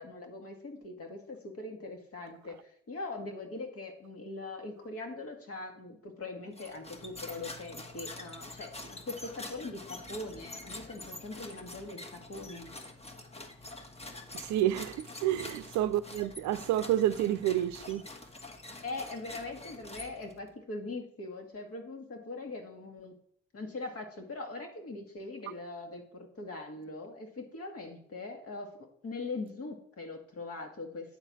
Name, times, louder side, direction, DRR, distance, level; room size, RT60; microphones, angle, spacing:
voice 1, 0.0-12.8 18.8-23.1 23.5-31.2, left 2 dB, 45° left, 1.7 m, -41 dB
sound 1, 6.5-20.5, left 2 dB, 20° left, 1.2 m, -46 dB
voice 2, 14.3-18.0, right 12 dB, 65° right, 0.6 m, -29 dB
8.8 x 4.0 x 6.1 m
hypercardioid pair, 55°, 31 cm